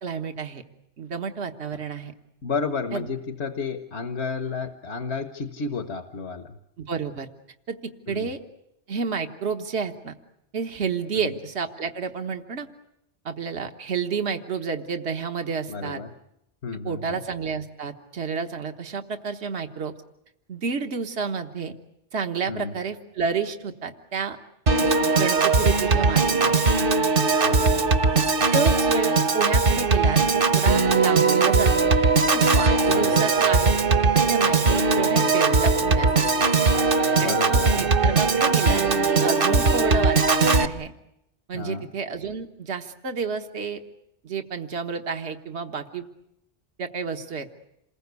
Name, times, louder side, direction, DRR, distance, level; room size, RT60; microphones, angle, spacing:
voice 1, 0.0-0.6 1.0-2.1 2.9-3.1 6.8-7.3 7.7-8.4 8.9-10.1 10.5-12.7 13.2-16.0 16.8-19.9 20.5-21.7 22.1-24.4 25.1-26.5 28.5-32.0 32.3-33.8 34.2-36.3 37.2-38.8 39.2-40.9 41.5-43.8 44.2-46.1 46.8-47.5, right 5 dB, 75° right, 5 dB, 1.6 m, -30 dB
voice 2, 2.4-6.6 8.1-8.3 11.2-11.3 15.7-16.1 16.6-17.2 22.5-22.7 27.4-27.9 32.8-33.2 37.2-37.8 41.5-41.9, left 4 dB, 80° left, 7 dB, 1.5 m, -31 dB
Piano / Organ, 24.7-40.7, right 4 dB, 55° right, 1.3 m, -20 dB
28.0 x 21.0 x 8.2 m, 0.81 s
omnidirectional pair, 1.1 m